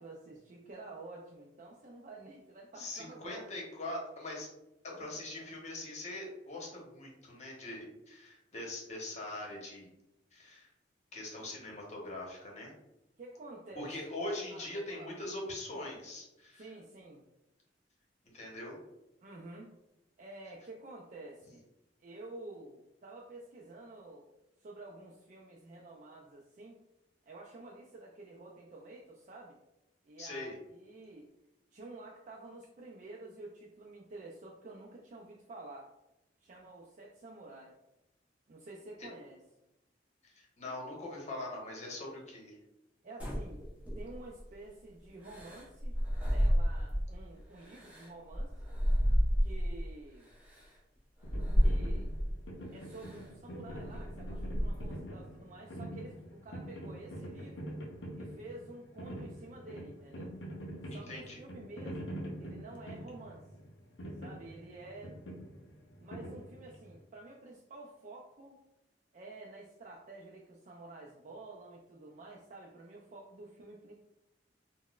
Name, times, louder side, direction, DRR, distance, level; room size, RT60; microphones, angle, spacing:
voice 1, 0.0-3.5 4.9-5.5 13.2-13.9 14.5-14.6 14.9-15.1 16.6-17.2 19.2-19.7 20.2-21.6 22.0-24.3 24.6-26.8 27.3-29.6 30.0-31.3 31.7-35.9 36.4-37.7 38.5-39.4 43.0-43.6 44.0-48.5 49.4-50.3 51.6-52.1 52.7-57.7 58.2-60.3 60.9-62.1 62.4-63.4 64.2-65.2 66.0-68.6 69.1-73.9, right 2 dB, 45° right, -2 dB, 0.4 m, -50 dB
voice 2, 2.8-4.5 5.0-9.9 10.3-10.7 11.1-12.7 13.7-16.8 18.3-18.8 30.2-30.6 39.0-39.1 40.2-42.6 60.9-61.4, left 1 dB, 40° left, -2 dB, 0.9 m, -42 dB
sound 1, 43.2-44.4 45.2-47.2 47.6-49.8 50.5-50.6 51.2-52.4 52.9-53.2 53.7-55.0, equal, 10° right, 0.7 m, -31 dB
sound 2, 51.2-67.0, equal, 85° left, 0.6 m, -45 dB
3.9 x 2.1 x 2.3 m, 0.92 s
head